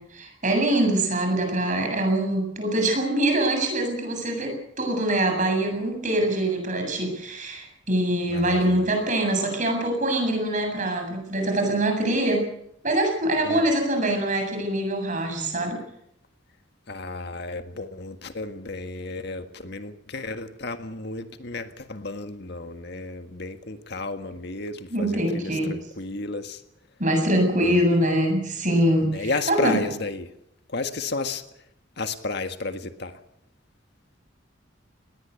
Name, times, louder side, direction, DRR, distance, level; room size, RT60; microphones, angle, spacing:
voice 1, 0.1-12.5 12.8-15.8 24.9-25.7 27.0-29.8, right 1 dB, 40° right, 4 dB, 7.6 m, -24 dB
voice 2, 8.3-8.9 13.4-13.7 16.9-26.6 27.6-27.8 29.0-30.3 30.7-31.4 32.0-33.2, left 3 dB, 60° left, 7 dB, 1.7 m, -32 dB
20.0 x 19.0 x 8.3 m, 0.78 s
head